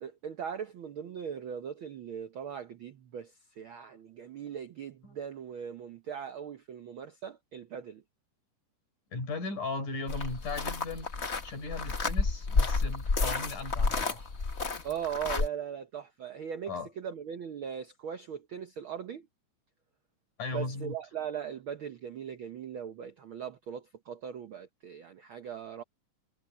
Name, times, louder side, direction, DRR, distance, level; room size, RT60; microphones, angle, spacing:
voice 1, 0.0-8.0 14.8-19.3 20.5-25.8, right 8 dB, 70° right, 1.2 m, -39 dB
voice 2, 9.1-14.3 16.7-16.9 20.4-20.9, left 3 dB, 80° left, 7.5 m, -37 dB
sound 1, 10.1-15.5, left 4 dB, 40° left, 0.9 m, -30 dB
omnidirectional pair, 3.6 m